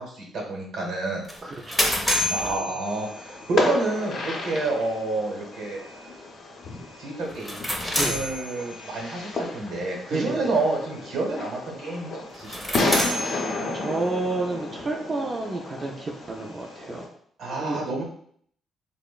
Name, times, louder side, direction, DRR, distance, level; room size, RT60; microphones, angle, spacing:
voice 1, 0.0-1.2 2.3-5.8 7.0-7.6 8.1-13.0 17.4-18.0, right 2 dB, 75° right, -1 dB, 0.8 m, -29 dB
sound 1, 1.3-3.5 7.3-9.0 12.3-14.1, left 1 dB, 10° left, 0.6 m, -28 dB
voice 2, 1.4-2.0 8.0-8.1 10.1-10.5 13.1-17.0 17.6-17.8, right 2 dB, 35° right, -1 dB, 0.3 m, -30 dB
Fireworks, 2.8-17.1, left 2 dB, 60° left, 0.5 m, -32 dB
3.0 x 2.0 x 2.2 m, 0.62 s
cardioid pair, 90°, 0 cm